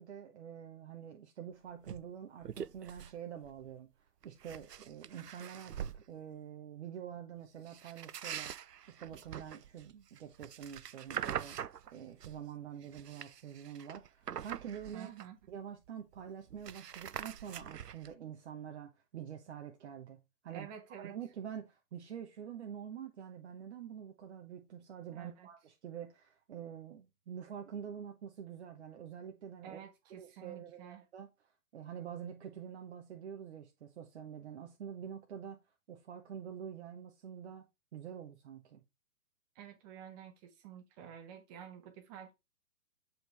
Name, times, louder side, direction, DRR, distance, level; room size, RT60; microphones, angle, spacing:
voice 1, 0.0-8.5 8.9-11.6 11.9-15.1 15.5-20.7 21.0-29.8 30.2-31.3 31.7-35.6 35.9-38.8, right 8 dB, 45° right, 1.1 m, -46 dB
sound 1, 1.8-2.0 2.4-3.2 3.4-3.7 4.2-6.0 7.7-12.4 12.8-15.5 15.9-16.0 16.2-18.1, right 9 dB, 85° right, 0.6 m, -44 dB
voice 2, 14.9-15.4 20.5-21.1 25.1-25.5 29.6-31.0 39.5-42.3, right 9 dB, 25° right, 1.5 m, -50 dB
7.7 x 4.9 x 3.3 m
figure-of-eight pair, 120°, 47 cm